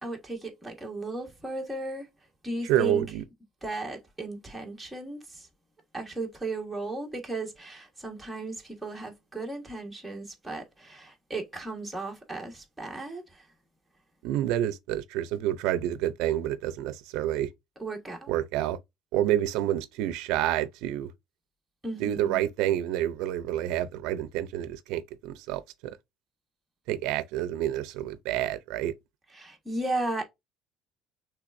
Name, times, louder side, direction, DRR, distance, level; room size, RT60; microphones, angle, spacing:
voice 1, 0.0-2.1 2.4-3.0 3.6-5.5 5.9-13.2 17.8-18.3 21.8-22.5 29.3-30.2, right 2 dB, 5° right, 1.5 m, -35 dB
voice 2, 2.6-3.2 14.2-17.5 18.3-18.8 19.1-21.1 22.0-26.0 26.9-28.9, right 12 dB, 80° right, 0.5 m, -28 dB
5.8 x 3.4 x 2.6 m
cardioid pair, 140°, 0 cm